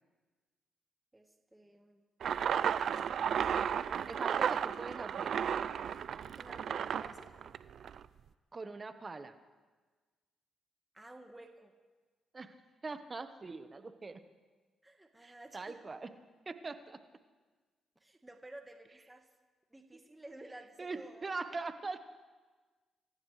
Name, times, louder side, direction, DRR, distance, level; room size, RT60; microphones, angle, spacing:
voice 1, 1.1-2.0 2.5-3.2 6.4-7.3 10.9-11.7 14.8-15.8 18.0-19.2 19.7-21.4, right 1 dB, 15° right, 4 dB, 1.5 m, -53 dB
sound 1, 2.2-8.1, right 8 dB, 65° right, 0.5 m, -33 dB
voice 2, 4.1-5.3 8.5-9.3 12.3-12.5 12.8-14.2 15.2-16.1 16.5-17.0 20.8-22.0, right 3 dB, 30° right, 9 dB, 1.2 m, -42 dB
26.0 x 15.0 x 3.3 m, 1.4 s
cardioid pair, 75°, 0 cm